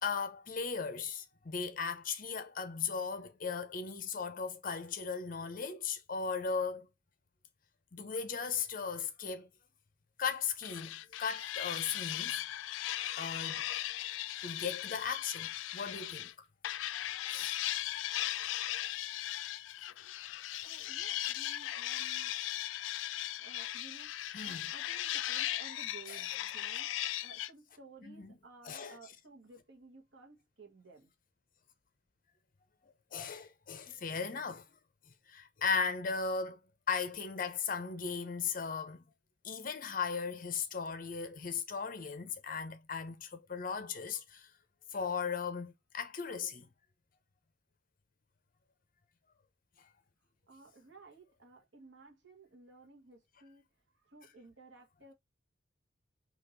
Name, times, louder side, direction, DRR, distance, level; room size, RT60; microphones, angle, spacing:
voice 1, 0.0-6.9 7.9-9.5 10.2-12.4 13.2-13.6 14.4-16.5 17.3-17.6 24.3-24.7 26.1-26.2 28.1-28.4 28.6-29.0 33.1-34.7 35.3-36.6 36.9-39.0 39.4-44.5 44.9-46.7, left 5 dB, 45° left, 0.7 m, -37 dB
sound 1, 10.6-16.3 16.6-27.5, left 13 dB, 85° left, 0.3 m, -38 dB
voice 2, 20.6-22.3 23.4-31.1 50.4-53.7 54.0-55.1, right 3 dB, 75° right, 1.3 m, -56 dB
4.2 x 2.9 x 3.8 m
head